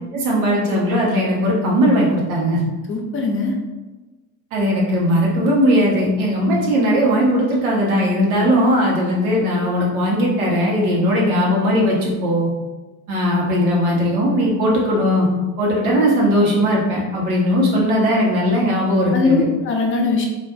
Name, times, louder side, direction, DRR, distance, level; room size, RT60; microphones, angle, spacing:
voice 1, 0.1-2.6 4.5-12.5 13.1-15.3 15.6-19.5, equal, 85° right, -3 dB, 1.1 m, -18 dB
voice 2, 2.9-3.5 19.1-20.3, left 4 dB, 30° left, 1 dB, 0.6 m, -20 dB
3.8 x 2.5 x 2.3 m, 1.2 s
hypercardioid pair, 95°, 42 cm